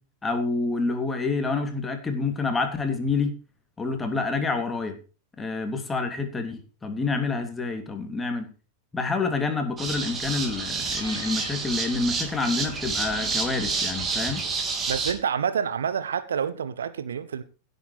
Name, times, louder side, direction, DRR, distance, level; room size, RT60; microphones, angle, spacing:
voice 1, 0.2-3.3 3.8-5.0 5.4-8.5 8.9-14.4, left 3 dB, 15° left, 3.1 m, -28 dB
sound 1, 9.8-15.1, right 4 dB, 20° right, 3.4 m, -29 dB
Meow, 10.8-11.7, left 1 dB, 90° left, 2.8 m, -43 dB
voice 2, 14.9-17.4, right 7 dB, 65° right, 1.0 m, -28 dB
16.5 x 8.3 x 4.9 m
figure-of-eight pair, 90°, 0 cm